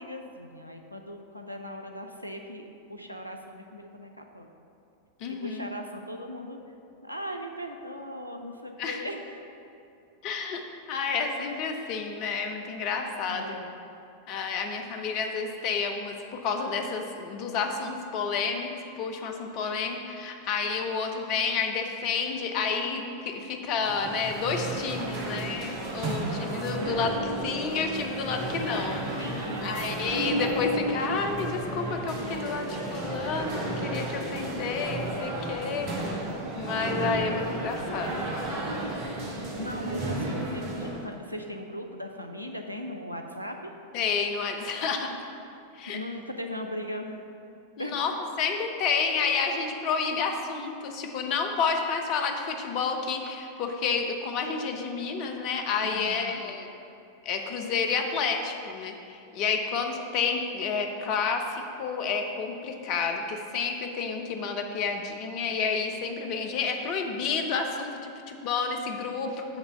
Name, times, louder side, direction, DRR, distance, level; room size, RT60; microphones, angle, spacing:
voice 1, 0.0-4.5 5.3-6.6 7.0-9.4 13.3-13.8 29.2-29.8 39.2-43.7 45.9-47.2 47.8-48.0 55.8-56.4, equal, 90° left, 4 dB, 0.6 m, -38 dB
voice 2, 5.2-5.7 8.8-9.0 10.2-13.5 14.3-18.7 19.0-36.2 36.5-38.3 43.9-45.2 45.7-46.0 47.8-56.7 57.2-69.5, left 5 dB, 40° left, 4 dB, 0.7 m, -30 dB
sound 1, 23.7-41.1, right 2 dB, 45° right, 1.3 m, -33 dB
8.1 x 3.4 x 6.5 m, 2.7 s
figure-of-eight pair, 90°, 0 cm